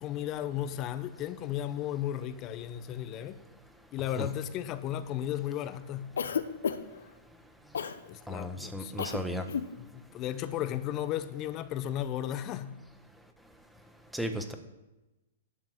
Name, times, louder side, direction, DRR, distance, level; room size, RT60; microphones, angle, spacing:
voice 1, 0.0-3.4 3.9-6.2 8.1-8.9 9.8-12.8, left 11 dB, 35° left, 0.9 m, -35 dB
Cough, 6.2-7.0 7.7-8.0 9.0-9.2 9.5-9.7, left 7 dB, 75° left, 0.8 m, -31 dB
voice 2, 8.3-9.4 14.1-14.5, equal, ahead, 1.3 m, -34 dB
11.5 x 5.9 x 7.6 m
hypercardioid pair, 120°, 0 cm